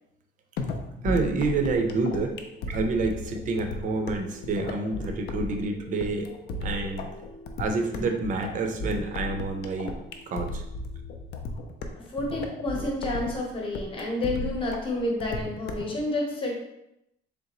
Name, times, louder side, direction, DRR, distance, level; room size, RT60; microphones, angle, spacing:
sound 1, 0.6-16.0, left 2 dB, 55° left, 0.5 m, -35 dB
voice 1, 1.0-2.4 2.7-6.3 6.6-7.1 7.6-9.9 10.3-10.6, right 3 dB, 40° right, 4 dB, 0.5 m, -28 dB
sound 2, 1.2-11.2, left 2 dB, 80° left, 1.0 m, -49 dB
voice 2, 12.1-16.6, left 1 dB, 25° left, -1 dB, 0.9 m, -29 dB
3.8 x 3.3 x 2.9 m, 0.83 s
cardioid pair, 170°, 20 cm